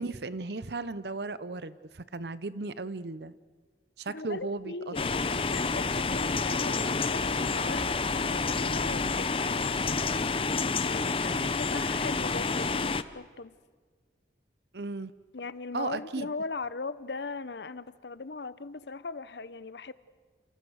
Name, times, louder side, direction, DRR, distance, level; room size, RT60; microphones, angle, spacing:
voice 1, 0.0-3.3 4.0-4.9 14.7-15.1 15.7-16.3, right 3 dB, 70° right, 0.8 m, -36 dB
voice 2, 4.1-9.9 10.5-13.5 15.3-19.9, left 3 dB, 75° left, 0.9 m, -39 dB
sound 1, 4.9-13.0, left 4 dB, 30° left, 0.7 m, -29 dB
29.5 x 28.5 x 6.5 m
head